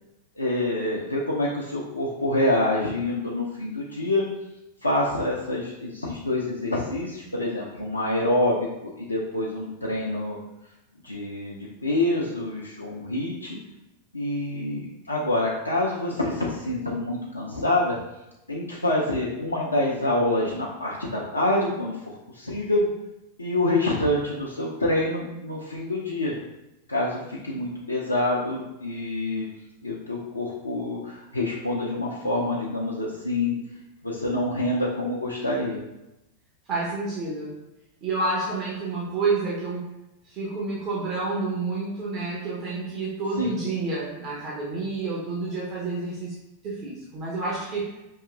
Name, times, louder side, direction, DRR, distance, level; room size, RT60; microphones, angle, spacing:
voice 1, 0.4-4.2 4.8-10.4 11.0-13.6 14.1-18.0 18.5-22.9 23.4-26.4 26.9-29.5 29.8-33.6 34.0-35.8 43.4-43.5, left 1 dB, 80° left, -4 dB, 0.5 m, -26 dB
voice 2, 36.7-37.6 38.0-39.9 40.2-46.3 46.6-47.9, right 3 dB, 35° right, -5 dB, 0.7 m, -29 dB
5.4 x 2.9 x 2.4 m, 0.94 s
figure-of-eight pair, 90°, 0 cm